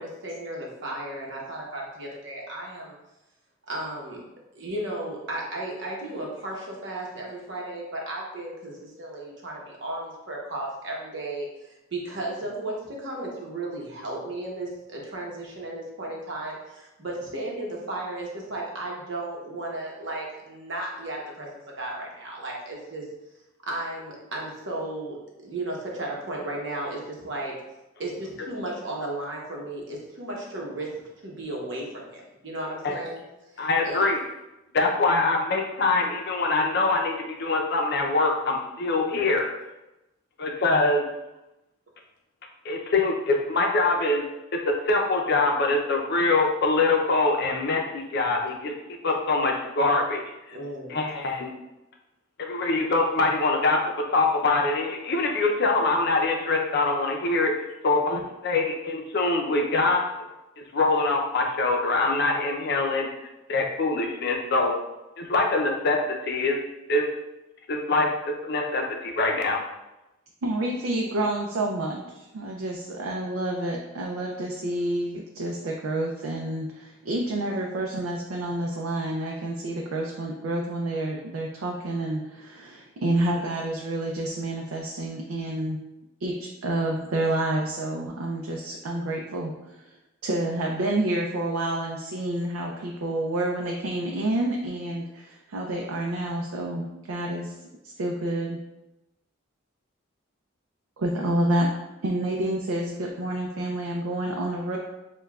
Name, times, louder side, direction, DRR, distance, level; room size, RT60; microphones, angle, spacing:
voice 1, 0.0-3.0 3.7-4.2 4.5-21.5 21.8-23.0 23.7-27.6 28.0-33.2 33.5-34.1 50.5-50.9, right 1 dB, 60° right, -2 dB, 0.9 m, -34 dB
voice 2, 33.6-34.2 34.7-39.5 40.4-41.0 42.6-44.3 44.6-48.7 49.0-50.2 50.5-50.6 50.9-51.5 52.4-53.8 54.1-57.5 57.8-60.2 60.7-63.1 63.5-64.7 65.2-66.0 66.2-66.6 66.9-67.0 67.7-68.1 68.4-69.6, left 3 dB, 50° left, 2 dB, 0.5 m, -24 dB
voice 3, 70.4-85.8 86.2-89.8 90.2-97.5 97.8-98.6 101.0-101.7 102.0-104.8, right 1 dB, 90° right, 0 dB, 0.4 m, -29 dB
6.5 x 2.2 x 2.3 m, 0.98 s
head